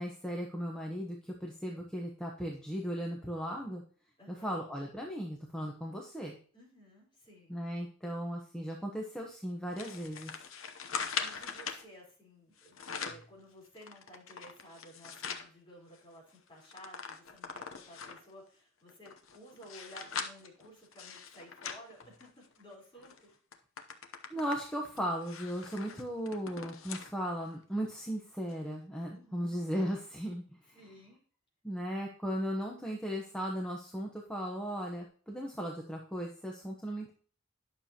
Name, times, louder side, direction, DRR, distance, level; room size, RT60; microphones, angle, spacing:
voice 1, 0.0-3.8 4.3-6.4 7.5-10.3 24.3-30.4 31.6-37.1, equal, 5° left, -1 dB, 1.1 m, -37 dB
voice 2, 4.2-4.6 6.5-7.6 11.2-23.3 29.1-29.6 30.7-31.2, equal, 25° left, -3 dB, 4.3 m, -54 dB
sound 1, 9.8-11.8 12.6-13.3 13.8-15.5 15.9-16.0 16.3-18.3 18.9-22.6 23.0-23.2 23.5-27.1 27.5-27.6 28.5-28.6, left 6 dB, 80° left, 0.9 m, -41 dB
11.0 x 6.9 x 2.9 m, 0.42 s
head